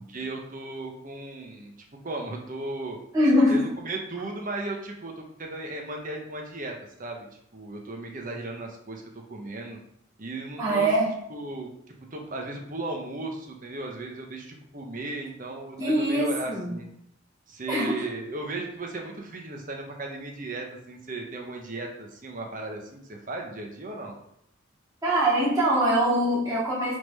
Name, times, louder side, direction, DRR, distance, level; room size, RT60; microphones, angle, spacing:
voice 1, 0.1-1.7 2.0-3.0 3.5-6.7 7.0-7.3 7.5-9.0 9.3-9.8 10.2-10.9 11.3-16.9 17.5-24.1, right 2 dB, 40° right, 1 dB, 1.1 m, -36 dB
voice 2, 3.1-3.6 10.6-11.1 15.8-16.7 17.7-18.0 25.0-26.9, equal, 15° right, -10 dB, 2.6 m, -23 dB
6.4 x 3.8 x 5.5 m, 0.76 s
head